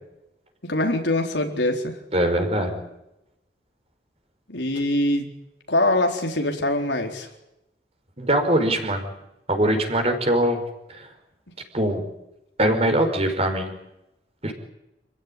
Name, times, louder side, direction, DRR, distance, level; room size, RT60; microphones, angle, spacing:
voice 1, 0.6-1.9 4.5-5.3 5.7-7.3, left 1 dB, 85° left, 3 dB, 4.2 m, -23 dB
voice 2, 2.1-2.8 8.2-9.1 9.5-10.6 10.9-11.1 11.7-12.0 12.6-13.7 14.4-14.5, right 1 dB, 35° right, 6 dB, 5.0 m, -22 dB
28.0 x 16.0 x 10.0 m, 0.90 s
head